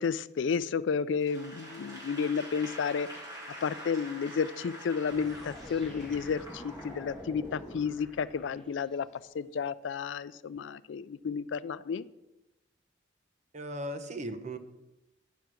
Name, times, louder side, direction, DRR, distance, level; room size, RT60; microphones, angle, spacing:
voice 1, 0.0-3.1 3.6-9.1 9.3-12.0, left 6 dB, 70° left, 17 dB, 0.4 m, -32 dB
Applause / Crowd, 1.2-7.6, equal, 20° right, 2.6 m, -46 dB
sound 1, 5.1-9.0, left 1 dB, 5° left, 1.5 m, -46 dB
voice 2, 13.5-14.6, right 1 dB, 40° right, 8 dB, 0.8 m, -37 dB
9.3 x 5.8 x 6.2 m, 0.96 s
head